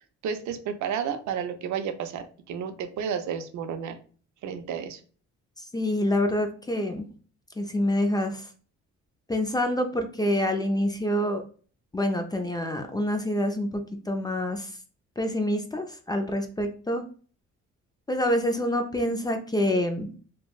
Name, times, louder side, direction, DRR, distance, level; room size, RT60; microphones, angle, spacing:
voice 1, 0.2-4.0 4.4-5.0, right 7 dB, 70° right, 8 dB, 0.5 m, -31 dB
voice 2, 5.6-7.0 7.6-8.5 9.3-11.4 11.9-14.8 15.2-17.0 18.1-20.1, left 1 dB, 15° left, 5 dB, 0.4 m, -27 dB
3.2 x 2.2 x 2.3 m, 0.41 s
cardioid pair, 90°, 30 cm